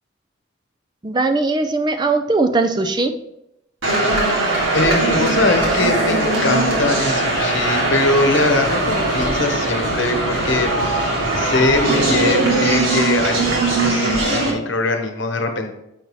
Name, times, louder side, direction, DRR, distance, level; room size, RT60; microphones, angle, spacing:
voice 1, 1.0-3.1, right 3 dB, 20° right, 7 dB, 0.4 m, -19 dB
sound 1, 3.8-14.5, right 2 dB, 75° right, 2.0 m, -20 dB
voice 2, 4.7-15.7, left 2 dB, 65° left, 5 dB, 1.0 m, -22 dB
7.3 x 5.4 x 3.1 m, 0.83 s
head